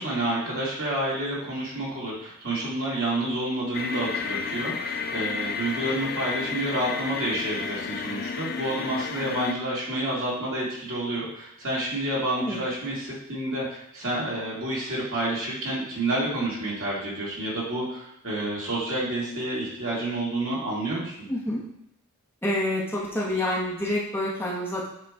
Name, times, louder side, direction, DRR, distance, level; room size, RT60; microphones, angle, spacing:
voice 1, 0.0-21.2, right 1 dB, 65° right, -6 dB, 2.2 m, -29 dB
sound 1, 3.7-9.5, left 5 dB, 45° left, 0.3 m, -32 dB
voice 2, 21.3-21.6 22.4-24.9, left 1 dB, 10° left, -5 dB, 1.0 m, -27 dB
7.5 x 3.0 x 4.7 m, 0.77 s
head